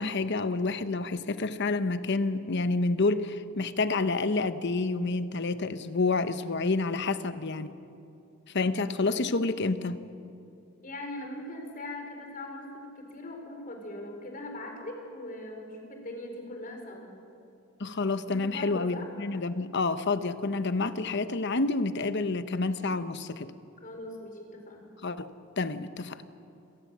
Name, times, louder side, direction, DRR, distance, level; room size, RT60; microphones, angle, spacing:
voice 1, 0.0-7.7 8.5-10.0 17.8-23.5 25.0-25.3 25.6-26.2, left 3 dB, 60° left, 12 dB, 1.0 m, -29 dB
voice 2, 10.8-17.1 18.3-19.1 23.8-24.8, left 1 dB, 45° left, 3 dB, 4.3 m, -40 dB
28.0 x 18.5 x 7.5 m, 2.6 s
head